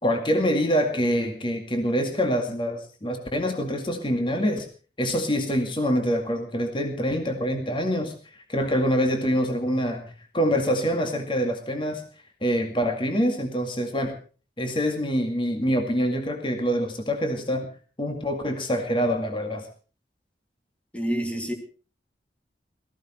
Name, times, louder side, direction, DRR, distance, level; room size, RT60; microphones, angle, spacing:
voice 1, 0.0-4.7 5.0-8.1 8.5-10.0 10.3-12.0 12.4-14.2 14.6-17.7 18.0-19.7, equal, 30° left, 5 dB, 2.1 m, -25 dB
voice 2, 20.9-21.5, right 1 dB, 5° left, 4 dB, 2.6 m, -27 dB
18.0 x 15.0 x 4.4 m, 0.37 s
head